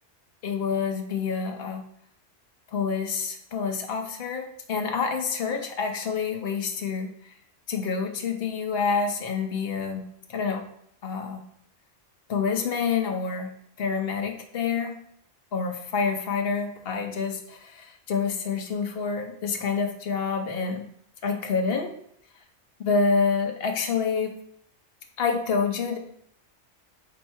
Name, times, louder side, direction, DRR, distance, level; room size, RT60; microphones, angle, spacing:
voice 1, 0.4-1.8 2.7-7.1 7.7-10.6 11.0-11.4 12.3-13.5 13.8-15.0 15.5-20.8 21.2-21.9 22.8-24.3 25.2-26.0, left 5 dB, 60° left, 5 dB, 0.8 m, -27 dB
4.4 x 2.7 x 4.3 m, 0.68 s
omnidirectional pair, 1.2 m